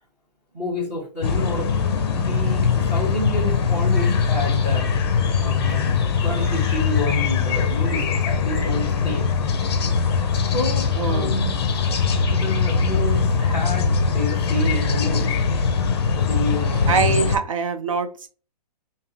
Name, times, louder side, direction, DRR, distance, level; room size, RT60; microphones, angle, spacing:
voice 1, 0.5-1.7 2.1-4.9 5.4-9.3 10.5-11.5 12.3-15.4 16.2-17.2, left 1 dB, 10° right, -5 dB, 0.9 m, -29 dB
sound 1, 1.2-17.4, left 5 dB, 40° left, 0.6 m, -21 dB
voice 2, 11.0-11.3 16.9-18.3, right 5 dB, 50° right, 9 dB, 0.5 m, -23 dB
3.6 x 2.8 x 3.2 m, 0.36 s
hypercardioid pair, 175°, 21 cm